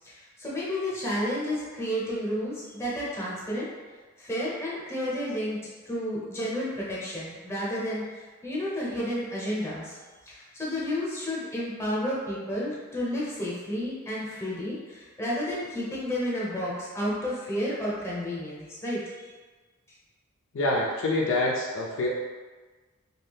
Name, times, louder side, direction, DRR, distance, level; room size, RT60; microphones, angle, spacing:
voice 1, 0.4-3.7 4.2-5.6 5.9-8.0 8.4-9.9 10.3-19.3, equal, 15° left, -7 dB, 0.8 m, -31 dB
voice 2, 20.5-22.1, left 2 dB, 65° left, -3 dB, 0.4 m, -26 dB
2.7 x 2.3 x 3.4 m, 1.4 s
head